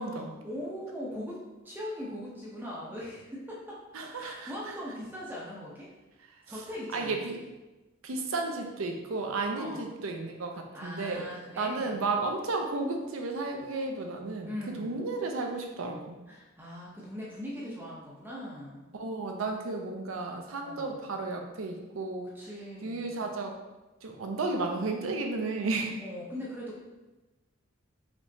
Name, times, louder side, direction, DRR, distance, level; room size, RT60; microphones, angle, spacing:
voice 1, 0.0-3.8 4.1-5.9 6.5-7.3 9.5-9.9 10.7-12.0 14.4-15.1 16.3-18.9 20.6-21.1 22.3-23.3 26.0-26.8, left 1 dB, 10° right, -5 dB, 0.7 m, -40 dB
voice 2, 3.9-4.5 6.9-7.4 8.0-11.3 11.6-14.5 14.8-16.2 18.9-22.4 22.8-23.6 24.0-26.0, right 3 dB, 90° right, 3 dB, 0.6 m, -33 dB
5.1 x 3.1 x 2.7 m, 1.1 s
head